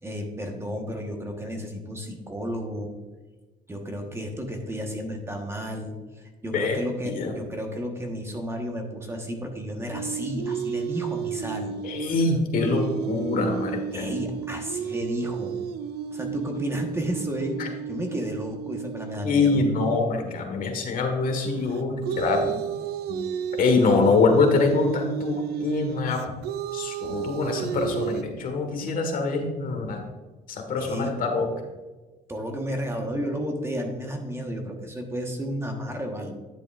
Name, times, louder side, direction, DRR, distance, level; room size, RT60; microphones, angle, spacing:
voice 1, 0.0-2.9 3.7-11.8 13.9-15.6 16.1-19.6 30.8-31.2 32.3-36.4, equal, 15° right, 3 dB, 1.3 m, -32 dB
voice 2, 6.5-7.3 11.8-14.1 17.6-17.7 19.2-22.5 23.1-23.3 23.6-26.2 26.7-30.0 30.5-31.5, left 4 dB, 55° left, 4 dB, 1.6 m, -24 dB
sound 1, 9.9-20.1 21.6-28.2, right 8 dB, 75° right, 0.5 m, -32 dB
10.5 x 7.8 x 2.5 m, 1.2 s
cardioid pair, 110°, 17 cm